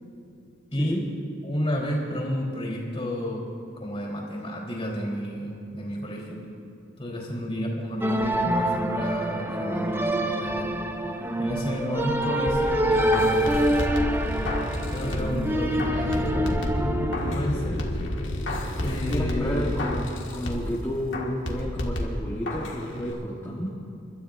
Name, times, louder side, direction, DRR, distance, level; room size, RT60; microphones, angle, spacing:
voice 1, 1.4-3.4 3.8-6.4 7.0-10.7 11.4-13.6 14.9-16.5 17.3-17.8 18.8-19.8, equal, 30° left, -2 dB, 3.7 m, -31 dB
sound 1, 8.0-17.4, equal, 10° right, 0.6 m, -26 dB
sound 2, 12.5-15.5 15.8-17.5 17.8-20.8 21.1-22.8 23.1-23.2, left 1 dB, 70° left, 1.9 m, -32 dB
sound 3, 12.9-20.0, left 1 dB, 55° left, 1.1 m, -31 dB
voice 2, 18.8-23.7, equal, 15° left, -5 dB, 1.3 m, -31 dB
29.5 x 13.0 x 2.6 m, 2.8 s
head